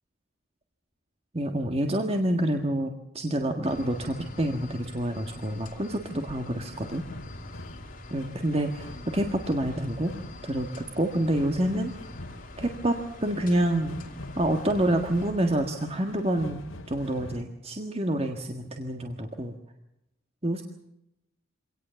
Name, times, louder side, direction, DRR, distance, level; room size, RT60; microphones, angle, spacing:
voice 1, 1.3-7.0 8.1-10.1 10.4-12.0 12.6-14.0 14.3-19.6 20.4-20.6, right 1 dB, 30° right, 4 dB, 1.7 m, -28 dB
sound 1, 3.6-15.3, left 2 dB, 45° left, 2.4 m, -46 dB
sound 2, 6.7-17.4, left 1 dB, 85° left, 2.7 m, -44 dB
24.5 x 18.5 x 7.0 m, 0.84 s
head